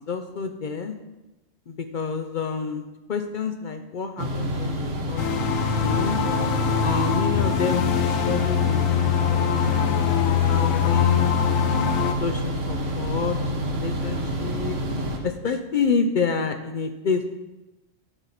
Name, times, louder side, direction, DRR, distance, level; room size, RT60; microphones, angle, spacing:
voice 1, 0.1-1.0 1.7-6.2 6.8-8.8 9.3-11.4 12.2-13.4 13.6-14.8 15.2-17.3, left 5 dB, 55° left, 7 dB, 0.5 m, -29 dB
sound 1, 4.2-15.2, right 1 dB, 70° right, 1.5 m, -28 dB
sound 2, 5.2-12.1, left 9 dB, 80° left, 1.0 m, -23 dB
10.0 x 5.6 x 4.1 m, 1.1 s
omnidirectional pair, 1.3 m